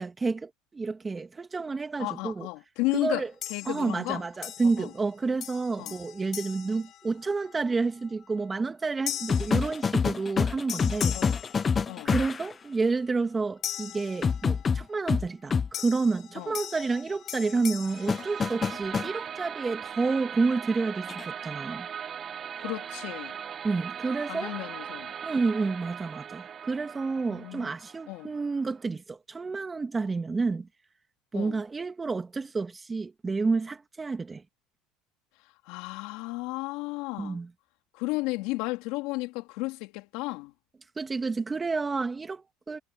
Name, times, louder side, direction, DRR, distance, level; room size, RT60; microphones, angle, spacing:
voice 1, 0.0-2.5 2.9-3.3 3.7-11.2 12.0-21.9 23.6-24.5 25.2-30.7 31.3-34.4 37.2-37.5 41.0-42.8, right 4 dB, 20° right, 2.2 m, -30 dB
voice 2, 2.0-3.2 3.5-4.2 4.6-4.9 5.8-6.0 11.1-11.4 11.9-12.1 16.4-16.5 22.6-23.4 24.3-25.1 27.3-27.7 28.1-28.3 31.3-31.6 35.7-37.4 37.9-40.5, left 23 dB, 75° left, 3.5 m, -33 dB
sound 1, 3.4-4.1 4.4-5.1 5.4-7.6 8.1-8.4 9.1-10.4 10.7-12.3 13.6-14.8 15.7-19.0, left 11 dB, 45° left, 7.2 m, -40 dB
sound 2, 9.3-12.5 14.2-15.7 18.1-19.1 21.1-21.3, left 5 dB, 25° left, 0.4 m, -26 dB
sound 3, 17.8-28.9, right 8 dB, 35° right, 6.7 m, -39 dB
supercardioid pair, 115°, 0 cm